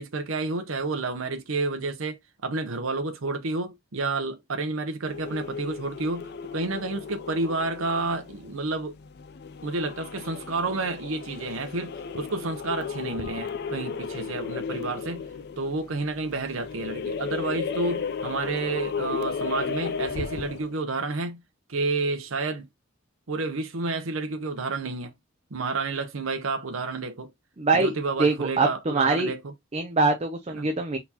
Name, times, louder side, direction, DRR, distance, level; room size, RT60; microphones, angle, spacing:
voice 1, 0.0-9.0 9.6-15.2 15.6-21.4 21.7-22.7 23.3-25.1 25.5-27.3 27.7-29.5 30.5-30.7, right 3 dB, 75° right, 0.8 m, -30 dB
sound 1, 5.1-20.7, left 6 dB, 50° left, 0.4 m, -34 dB
voice 2, 27.6-27.9 28.2-29.3 29.7-31.0, right 3 dB, 30° right, 0.6 m, -23 dB
4.1 x 4.0 x 2.8 m
head